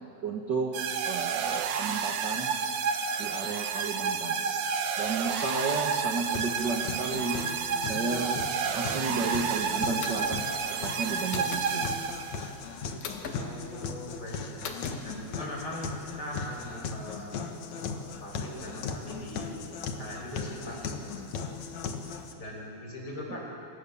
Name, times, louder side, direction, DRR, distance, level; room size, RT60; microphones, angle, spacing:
voice 1, 0.2-0.8 1.0-2.5 3.2-4.3 5.0-7.4 7.8-8.4 8.7-10.6 10.8-11.9 23.3-23.4, right 4 dB, 45° right, 1 dB, 1.6 m, -33 dB
sound 1, 0.7-12.6, right 6 dB, 65° right, 2.2 m, -30 dB
sound 2, 6.3-22.3, left 5 dB, 60° left, 2.5 m, -38 dB
sound 3, 10.0-10.4 11.3-11.7 13.0-13.4 14.6-14.9, left 6 dB, 80° left, 3.7 m, -38 dB
voice 2, 13.3-17.4 17.7-19.5 20.0-21.6 22.4-23.4, equal, 25° left, -1 dB, 6.1 m, -41 dB
27.0 x 27.0 x 7.2 m, 2.5 s
omnidirectional pair, 4.1 m